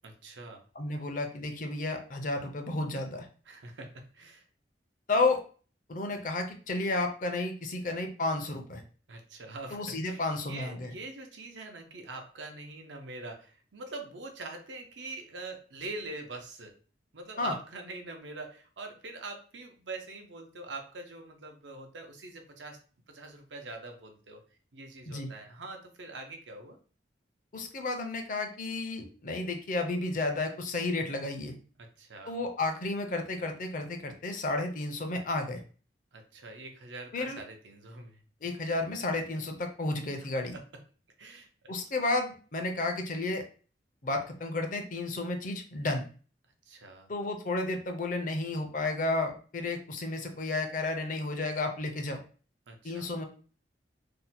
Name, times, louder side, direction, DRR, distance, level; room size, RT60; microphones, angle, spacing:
voice 1, 0.0-0.6 3.5-4.4 9.1-16.8 17.1-22.8 23.1-24.4 24.7-26.8 31.8-32.4 36.1-38.2 40.3-40.6 41.2-41.7 46.7-47.1 52.7-53.1, right 2 dB, 85° right, 3 dB, 0.7 m, -44 dB
voice 2, 0.8-3.3 5.1-5.4 5.9-8.8 9.7-10.9 17.4-17.5 25.1-25.3 27.5-31.6 32.3-35.6 37.1-37.4 38.4-40.5 41.7-43.4 44.0-46.0 47.1-52.2 52.8-53.2, left 2 dB, 45° left, 5 dB, 0.6 m, -32 dB
2.7 x 2.2 x 4.1 m, 0.39 s
head